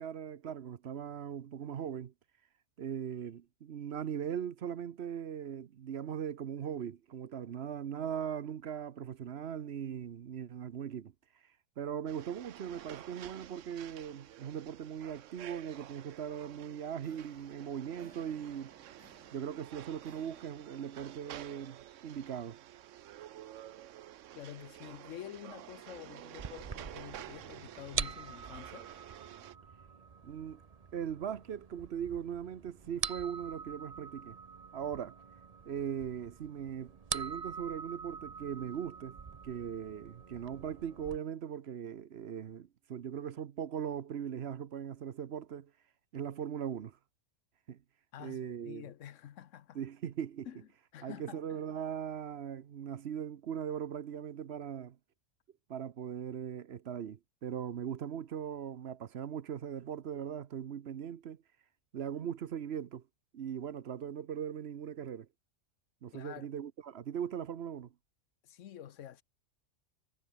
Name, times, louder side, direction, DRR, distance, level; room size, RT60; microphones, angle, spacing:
voice 1, 0.0-2.1 2.8-11.1 11.8-18.8 19.3-22.6 30.2-30.6 30.9-34.4 34.7-35.2 35.6-39.2 39.4-45.7 46.1-47.0 47.7-47.8 48.2-48.9 49.7-50.5 51.0-55.0 55.7-61.4 61.9-63.0 63.3-65.3 66.0-67.9, right 8 dB, 60° right, 1.0 m, -39 dB
sound 1, 12.1-29.5, right 12 dB, 90° right, 1.0 m, -51 dB
sound 2, 17.0-21.2, equal, 5° left, 3.2 m, -65 dB
voice 2, 24.3-28.9 48.1-49.8 50.5-51.4 66.1-66.5 68.4-69.2, left 10 dB, 90° left, 1.2 m, -48 dB
sound 3, 26.4-41.2, right 5 dB, 35° right, 0.8 m, -44 dB
omnidirectional pair, 1.2 m